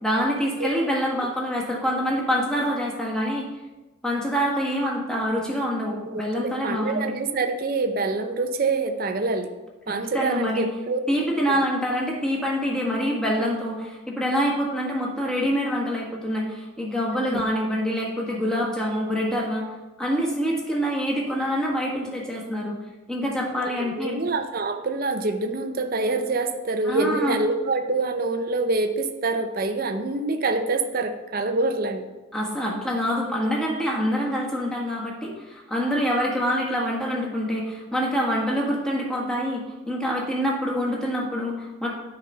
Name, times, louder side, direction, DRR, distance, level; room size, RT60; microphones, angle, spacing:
voice 1, 0.0-3.4 4.0-7.0 9.9-10.7 11.1-19.6 20.0-22.7 23.1-24.2 26.8-27.4 32.3-41.9, equal, 5° left, -3 dB, 1.5 m, -26 dB
voice 2, 6.1-9.5 9.9-11.0 17.1-17.4 23.7-32.0, right 3 dB, 45° right, 6 dB, 0.5 m, -26 dB
9.2 x 4.1 x 5.4 m, 1.1 s
head